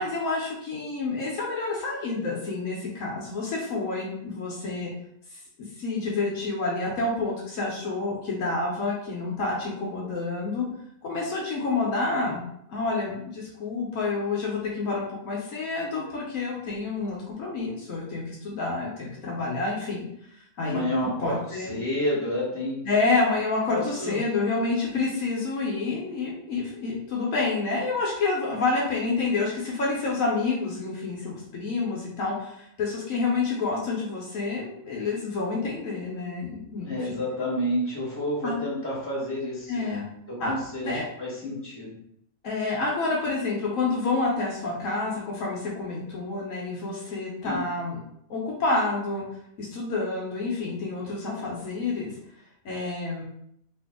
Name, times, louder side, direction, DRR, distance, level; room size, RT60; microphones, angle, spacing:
voice 1, 0.0-4.9 5.8-10.7 11.0-12.4 12.7-20.1 20.3-20.8 21.2-21.7 22.8-37.2 38.4-38.5 39.7-40.1 40.4-40.5 40.8-41.1 42.4-48.0 48.3-49.2 49.6-52.1 52.6-53.2, left 3 dB, 70° left, -3 dB, 1.1 m, -28 dB
voice 2, 20.6-22.8 23.7-24.2 36.8-39.8 40.3-41.9 47.4-47.6, left 1 dB, 10° left, -6 dB, 1.2 m, -30 dB
2.9 x 2.6 x 3.5 m, 0.74 s
omnidirectional pair, 1.5 m